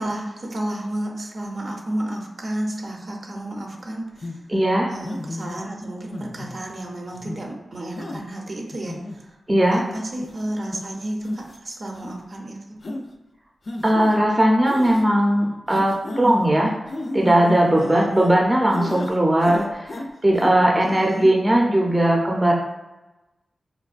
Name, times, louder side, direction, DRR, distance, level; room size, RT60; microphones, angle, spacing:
voice 1, 0.0-4.5 4.9-9.4 9.7-12.8 17.8-18.1 20.8-21.3, right 1 dB, 60° right, -1 dB, 0.7 m, -32 dB
sound 1, 4.2-4.4 5.0-5.6 6.1-6.6 7.1-7.4 8.0-8.2 8.7-9.2 9.7-9.8 10.2-10.4 10.7-10.8 11.2-11.6 11.9-12.1 12.8-13.0 13.6-14.2 14.6-15.0 15.7-16.4 16.9-18.4 18.7-19.1 19.4-20.1 20.3-20.5, left 2 dB, 55° left, 0.4 m, -32 dB
voice 2, 4.5-4.9 9.5-9.9 13.8-16.7 17.1-22.5, right 1 dB, 25° right, -1 dB, 0.6 m, -19 dB
4.5 x 2.2 x 2.4 m, 1.0 s
cardioid pair, 60°, 0 cm